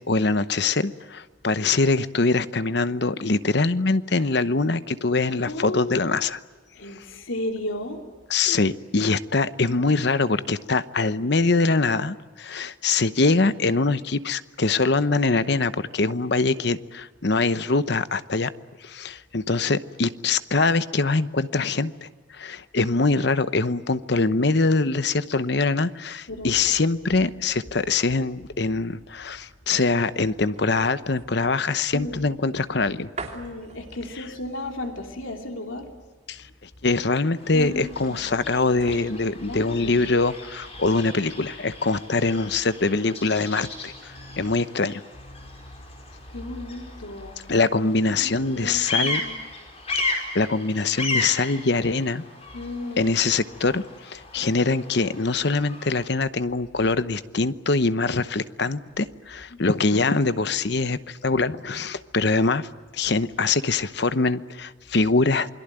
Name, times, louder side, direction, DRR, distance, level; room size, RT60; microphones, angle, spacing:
voice 1, 0.1-6.4 6.9-7.1 8.3-18.5 18.8-33.1 36.3-45.0 47.5-49.2 49.9-52.2 53.0-62.7 62.9-65.5, left 3 dB, 55° left, 13 dB, 0.9 m, -23 dB
voice 2, 5.4-6.1 6.7-8.0 26.3-26.6 31.9-32.3 33.3-35.9 37.4-38.2 39.4-40.1 44.1-44.5 45.3-45.7 46.3-47.4 48.2-49.4 52.5-53.2 59.5-59.6, left 1 dB, 85° left, 4 dB, 2.9 m, -34 dB
sound 1, 26.4-40.4 40.8-41.0, right 3 dB, 35° right, 3.0 m, -46 dB
Bird vocalization bird call bird song, 37.3-56.1, left 3 dB, 30° left, 5.3 m, -35 dB
28.0 x 22.5 x 9.0 m, 1.3 s
head